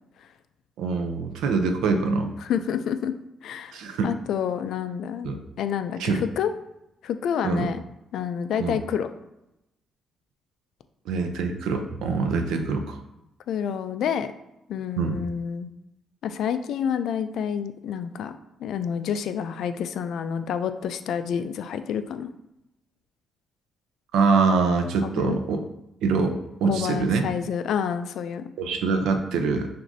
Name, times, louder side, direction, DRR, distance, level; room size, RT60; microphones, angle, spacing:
voice 1, 0.8-2.3 3.7-4.1 5.2-5.4 6.0-6.2 7.4-7.7 8.6-8.8 11.1-13.0 15.0-15.2 24.1-25.6 26.0-26.4 26.6-27.3 28.6-29.7, right 4 dB, 85° right, 6 dB, 0.5 m, -24 dB
voice 2, 2.4-3.1 3.4-6.5 7.0-7.8 8.1-9.1 13.5-14.3 14.7-15.7 16.2-18.3 18.6-22.3 25.0-25.4 26.6-28.4, left 8 dB, 75° left, 10 dB, 0.3 m, -28 dB
6.0 x 2.5 x 2.6 m, 0.88 s
cardioid pair, 90°, 0 cm